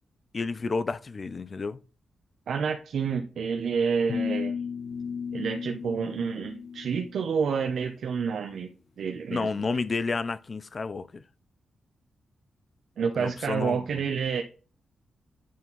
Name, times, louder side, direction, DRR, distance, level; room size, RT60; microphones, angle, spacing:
voice 1, 0.3-1.8 9.3-11.2 13.2-13.8, left 4 dB, 35° left, 0.5 m, -30 dB
voice 2, 2.5-4.6 5.3-9.7 13.0-14.4, right 6 dB, 70° right, 0.8 m, -29 dB
sound 1, 4.1-7.2, left 6 dB, 50° left, 0.9 m, -34 dB
9.3 x 4.4 x 4.0 m
wide cardioid pair, 135°, 0 cm